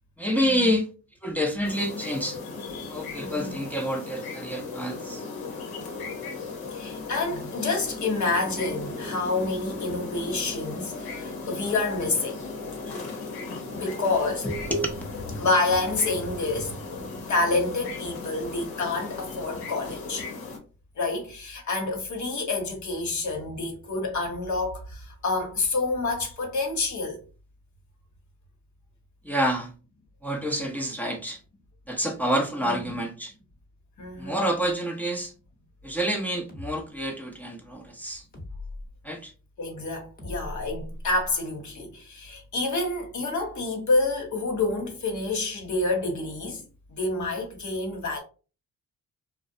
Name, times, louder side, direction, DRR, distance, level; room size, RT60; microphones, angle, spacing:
voice 1, 0.2-0.9 1.2-2.4 2.9-5.2 14.4-15.0 29.2-29.7 30.2-31.4 31.9-33.3 34.2-35.3 35.8-38.2 39.0-39.3, equal, 5° left, 0.5 m, -28 dB
sound 1, 1.6-20.6, left 3 dB, 90° left, 0.8 m, -37 dB
voice 2, 2.6-3.6 6.7-12.5 13.7-14.5 15.4-16.8 17.3-20.3 21.0-27.2 32.6-32.9 34.0-34.4 39.6-46.6 46.9-48.2, left 3 dB, 55° left, 0.9 m, -28 dB
sound 2, 36.5-36.8 38.3-38.9 40.2-41.3, left 2 dB, 25° left, 0.9 m, -38 dB
2.4 x 2.0 x 2.6 m
cardioid pair, 75°, 35 cm